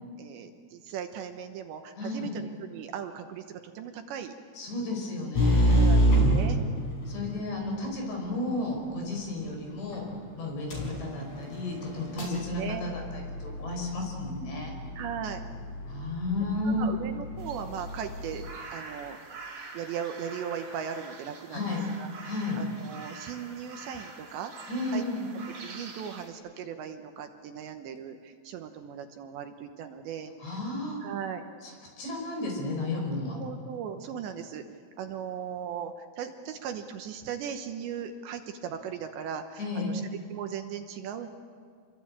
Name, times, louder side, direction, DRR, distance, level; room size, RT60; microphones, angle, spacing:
voice 1, 0.2-4.4 5.7-6.6 12.2-12.8 15.0-15.4 16.7-19.3 19.7-24.5 24.9-25.0 25.6-30.3 31.0-31.4 33.4-34.6 35.0-40.0 40.3-41.3, right 8 dB, 70° right, 6 dB, 3.1 m, -38 dB
voice 2, 2.0-2.3 4.6-5.9 7.1-10.0 10.4-14.7 15.9-16.9 21.5-21.8 22.2-22.6 24.7-25.2 30.4-31.0 31.6-31.7 32.0-33.4 39.6-40.0, left 2 dB, 60° left, 1 dB, 7.6 m, -33 dB
sound 1, 5.3-7.4 9.9-10.0 10.7-18.5, right 1 dB, 35° left, 6.3 m, -28 dB
sound 2, 17.4-26.3, right 4 dB, 40° right, 3.8 m, -45 dB
28.5 x 22.5 x 8.9 m, 2.1 s
omnidirectional pair, 5.7 m